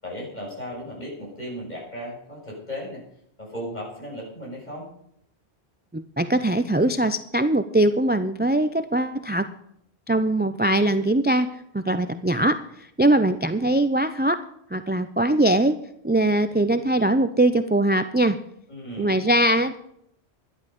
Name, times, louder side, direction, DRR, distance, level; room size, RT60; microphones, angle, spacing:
voice 1, 0.0-3.0 3.4-4.9 18.7-19.2, equal, 40° left, -4 dB, 6.8 m, -36 dB
voice 2, 5.9-9.5 10.1-11.5 11.7-14.4 14.7-15.8 16.0-18.4 19.0-19.8, right 1 dB, 15° right, 10 dB, 0.4 m, -21 dB
12.0 x 11.5 x 5.3 m, 0.72 s
omnidirectional pair, 1.1 m